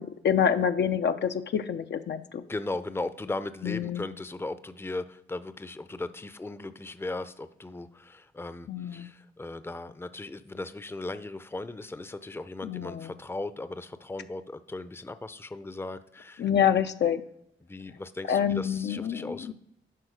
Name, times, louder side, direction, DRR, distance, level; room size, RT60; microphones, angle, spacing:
voice 1, 0.0-2.4 3.6-4.1 8.7-9.1 12.6-13.1 16.4-17.2 18.3-19.5, left 8 dB, 60° left, 7 dB, 0.6 m, -27 dB
voice 2, 2.5-16.5 17.6-19.5, left 2 dB, 10° left, 13 dB, 0.6 m, -37 dB
11.0 x 3.8 x 5.1 m, 0.75 s
supercardioid pair, 45°, 20 cm